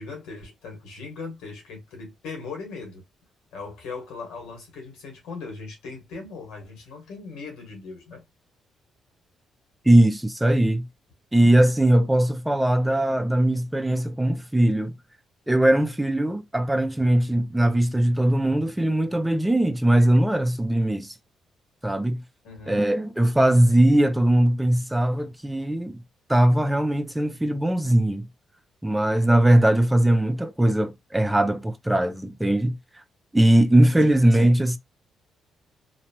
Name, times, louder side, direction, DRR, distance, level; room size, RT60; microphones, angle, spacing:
voice 1, 0.0-3.0 3.5-8.2 22.4-22.8 34.0-34.2, left 4 dB, 90° left, 1.5 m, -39 dB
voice 2, 9.9-10.9 11.3-14.9 15.5-21.1 21.8-22.2 22.7-26.0 26.3-28.3 28.8-32.8 33.3-34.8, right 1 dB, 5° right, 0.4 m, -20 dB
3.0 x 2.1 x 2.8 m
cardioid pair, 90°, 0 cm